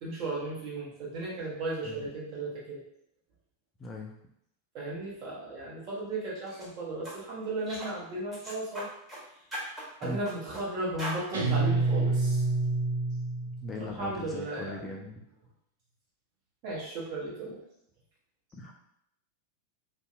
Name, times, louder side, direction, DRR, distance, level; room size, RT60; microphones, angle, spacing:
voice 1, 0.0-2.8 4.7-8.9 10.0-12.4 13.7-14.8 16.6-17.6, right 2 dB, 45° right, -4 dB, 0.9 m, -35 dB
voice 2, 3.8-4.1 10.0-10.2 13.6-15.3 18.5-18.7, left 2 dB, 20° left, 0 dB, 0.3 m, -39 dB
sound 1, 6.5-6.7 7.0-7.2 7.7-7.9 8.3-9.2 9.5-10.6 11.0-11.2, equal, 10° right, 1.1 m, -39 dB
Guitar, 11.3-13.9, right 3 dB, 65° right, 0.4 m, -27 dB
2.6 x 2.1 x 2.4 m, 0.75 s
figure-of-eight pair, 90°, 0 cm